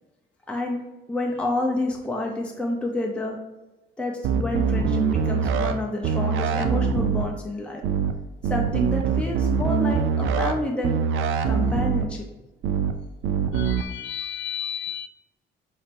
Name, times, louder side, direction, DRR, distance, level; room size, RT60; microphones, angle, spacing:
voice 1, 0.5-0.8 1.1-3.4 4.0-7.8 8.4-10.9 11.5-12.3, left 2 dB, 5° left, 0 dB, 0.8 m, -28 dB
sound 1, 4.2-5.7 6.0-7.2 7.8-8.1 8.4-10.5 10.8-12.0 12.6-12.9 13.2-13.8, right 6 dB, 80° right, 0.5 m, -23 dB
voice 2, 13.5-15.1, left 9 dB, 70° left, 11 dB, 0.4 m, -32 dB
5.8 x 3.2 x 2.7 m, 1.0 s
cardioid pair, 90°, 20 cm